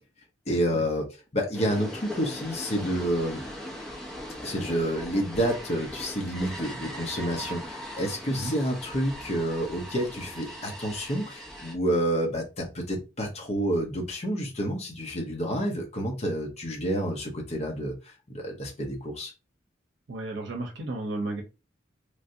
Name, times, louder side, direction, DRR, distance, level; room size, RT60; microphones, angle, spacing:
voice 1, 0.5-1.1 1.3-3.4 4.4-19.3, equal, 40° left, 1 dB, 0.7 m, -29 dB
sound 1, 1.5-11.7, equal, 5° left, 0.6 m, -39 dB
voice 2, 20.1-21.4, right 2 dB, 70° right, 2 dB, 0.7 m, -33 dB
3.2 x 2.6 x 2.6 m, 0.28 s
head